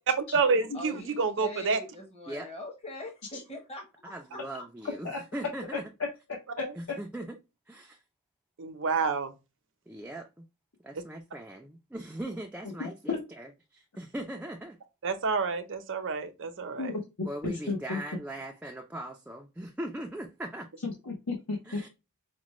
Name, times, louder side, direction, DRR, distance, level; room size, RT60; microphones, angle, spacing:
voice 1, 0.2-1.8 6.6-6.7 8.6-9.3 10.9-11.0 15.0-16.9, right 4 dB, 60° right, 0.7 m, -28 dB
voice 2, 0.7-3.8, left 1 dB, 25° left, 0.9 m, -42 dB
voice 3, 4.1-5.8 6.8-7.3 7.7-8.0 9.9-10.4 10.8-14.8 17.2-20.7 21.7-21.9, right 1 dB, 5° right, 0.4 m, -40 dB
voice 4, 6.6-7.0 12.8-13.2 16.8-18.0 20.8-21.9, left 3 dB, 70° left, 1.0 m, -34 dB
5.0 x 2.2 x 3.0 m
head